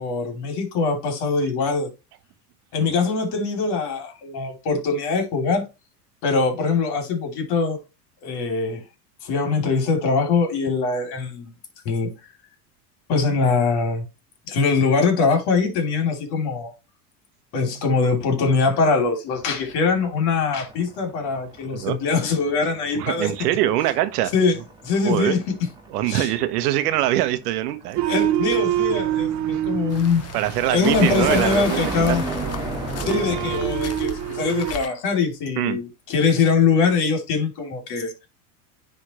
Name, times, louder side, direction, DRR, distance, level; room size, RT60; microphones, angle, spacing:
voice 1, 0.0-1.9 2.7-5.6 6.2-7.8 8.2-8.8 9.2-11.5 11.8-12.2 13.1-14.0 14.5-16.7 17.5-23.3 24.3-24.6 24.8-25.5 26.1-26.3 28.1-30.2 30.7-32.2 33.0-38.1, left 4 dB, 55° left, 2.9 m, -22 dB
sound 1, 19.3-33.9, right 2 dB, 10° right, 1.7 m, -34 dB
voice 2, 22.9-24.3 25.0-25.3 25.9-28.0 29.5-29.6 30.3-32.2 33.0-33.2 35.6-35.8, right 14 dB, 75° right, 1.0 m, -23 dB
sound 2, 28.0-34.7, right 12 dB, 35° right, 0.9 m, -27 dB
sound 3, 29.9-34.9, left 8 dB, 30° left, 0.9 m, -36 dB
10.0 x 3.6 x 3.0 m
hypercardioid pair, 95°, 47 cm